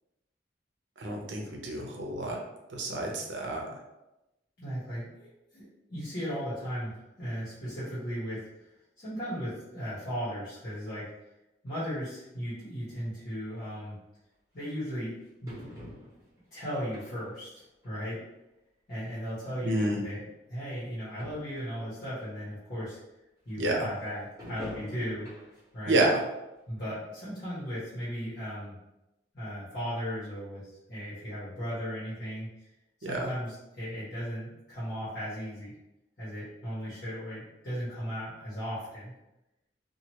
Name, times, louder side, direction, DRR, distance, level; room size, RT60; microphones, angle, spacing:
voice 1, 1.0-2.4 2.7-3.8 19.6-20.0 23.6-23.9 25.9-26.2 33.0-33.3, right 2 dB, 85° right, 0 dB, 0.7 m, -29 dB
voice 2, 4.6-6.9 7.2-11.1 11.6-14.0 14.5-15.1 15.4-15.8 16.5-18.2 18.9-20.2 20.5-23.0 23.4-25.4 25.7-26.0 26.7-28.8 29.3-32.7 33.0-35.7 36.2-39.2, equal, 55° left, -12 dB, 1.3 m, -36 dB
sound 1, 13.5-13.6 14.6-14.7 15.5-16.4 16.9-17.4 17.8-18.0 18.9-19.0 19.2-19.3 20.1-20.2 20.5-20.6 20.9-21.0 21.2-21.6 22.2-22.3 24.4-25.7 26.1-26.3 26.8-26.9, equal, 20° right, 1.2 m, -45 dB
2.8 x 2.5 x 3.0 m, 0.96 s
head